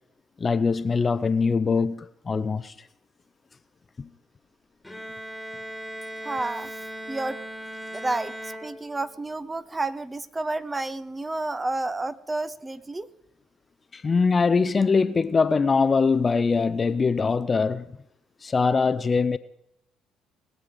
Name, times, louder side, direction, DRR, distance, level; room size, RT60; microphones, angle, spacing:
voice 1, 0.4-2.7 4.0-4.1 13.9-18.0 18.4-19.4, left 4 dB, 35° left, 0.6 m, -22 dB
Bowed string instrument, 4.8-9.3, right 1 dB, 10° left, 1.9 m, -38 dB
voice 2, 6.2-6.7 7.1-7.4 7.9-13.1, right 2 dB, 20° right, 0.8 m, -30 dB
20.5 x 7.6 x 5.0 m
hypercardioid pair, 60°, 0 cm